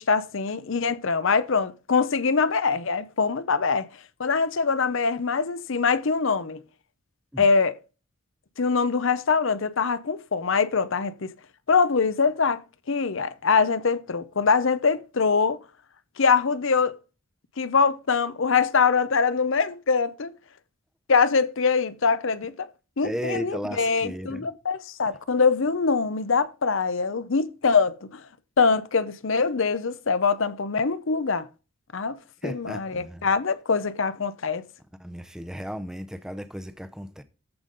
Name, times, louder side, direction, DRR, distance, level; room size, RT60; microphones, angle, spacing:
voice 1, 0.0-3.9 4.2-6.6 7.4-7.7 8.6-11.3 11.7-15.6 16.2-17.0 17.6-20.3 21.1-22.7 23.0-28.3 28.6-31.5 31.9-34.6, left 5 dB, 60° left, 0.7 m, -23 dB
voice 2, 23.0-24.5 32.4-33.2 35.0-37.2, equal, 5° right, 0.6 m, -35 dB
14.0 x 5.3 x 3.9 m
head